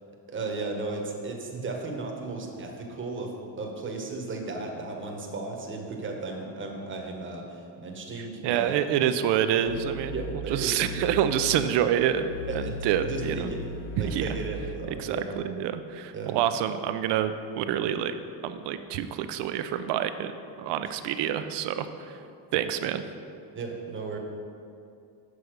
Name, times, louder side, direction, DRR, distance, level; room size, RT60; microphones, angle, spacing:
voice 1, 0.3-8.8 10.1-10.7 12.5-12.7 13.0-13.7 14.0-15.4 16.1-16.4 20.9-21.0 23.5-24.2, right 3 dB, 25° right, 1 dB, 1.1 m, -35 dB
voice 2, 8.2-10.1 10.5-13.5 14.0-14.3 15.0-18.1 18.4-20.3 20.6-22.2 22.5-23.0, right 10 dB, 65° right, 10 dB, 0.6 m, -27 dB
sound 1, 9.7-10.3 10.8-11.7 12.3-14.7, left 2 dB, 65° left, 1.5 m, -37 dB
6.8 x 6.3 x 5.0 m, 2.5 s
cardioid pair, 125°, 44 cm